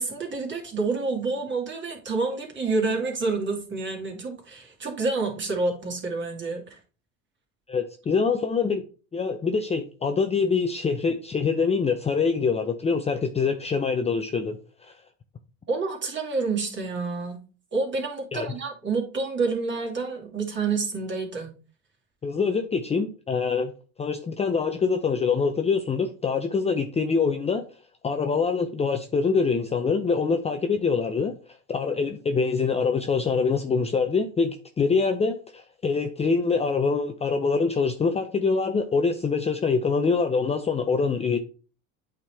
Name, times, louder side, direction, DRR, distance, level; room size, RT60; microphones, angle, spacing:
voice 1, 0.0-6.8 15.7-17.4 17.7-21.5, right 3 dB, 30° right, 2.3 m, -28 dB
voice 2, 7.7-8.9 9.1-14.9 18.3-18.5 22.2-23.7 24.0-27.6 28.0-31.3 31.7-41.4, left 5 dB, 15° left, 0.5 m, -24 dB
8.4 x 3.7 x 3.4 m
supercardioid pair, 100°, 37 cm